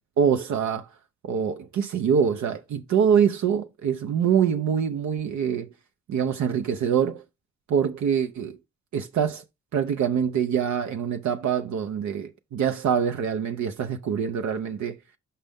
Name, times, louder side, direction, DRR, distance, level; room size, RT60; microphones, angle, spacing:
voice 1, 0.2-0.9 1.2-5.7 6.1-7.2 7.7-8.6 8.9-9.4 9.7-15.0, right 7 dB, 70° right, 0.7 m, -24 dB
5.6 x 5.0 x 3.5 m
supercardioid pair, 55°, 30 cm